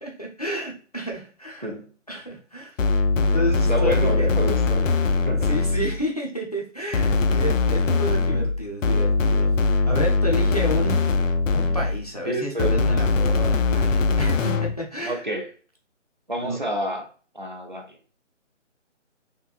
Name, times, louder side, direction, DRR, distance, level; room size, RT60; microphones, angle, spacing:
voice 1, 0.0-1.7 2.1-2.8 3.2-4.3 5.4-11.1 11.5-15.2 16.4-16.6, equal, 30° left, -1 dB, 0.5 m, -31 dB
sound 1, 2.8-6.0 6.9-12.1 12.6-14.8, left 3 dB, 90° left, 0.6 m, -21 dB
voice 2, 3.7-4.8 5.2-5.5 12.3-12.8 15.0-15.5 16.3-17.0 17.3-18.1, right 1 dB, 40° right, 2 dB, 0.5 m, -29 dB
3.6 x 2.7 x 2.4 m, 0.40 s
hypercardioid pair, 180°, 38 cm